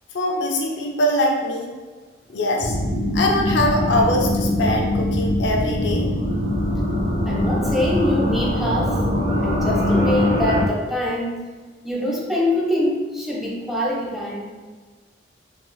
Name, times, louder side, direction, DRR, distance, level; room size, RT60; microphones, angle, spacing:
voice 1, 0.1-1.7 2.3-2.8 3.1-6.1, left 1 dB, 75° left, 1 dB, 0.5 m, -22 dB
sound 1, 2.6-10.6, left 1 dB, 85° right, 1.0 m, -22 dB
voice 2, 7.3-8.9 9.4-11.3 11.8-14.5, left 1 dB, ahead, -4 dB, 0.5 m, -24 dB
3.7 x 3.1 x 2.3 m, 1.4 s
head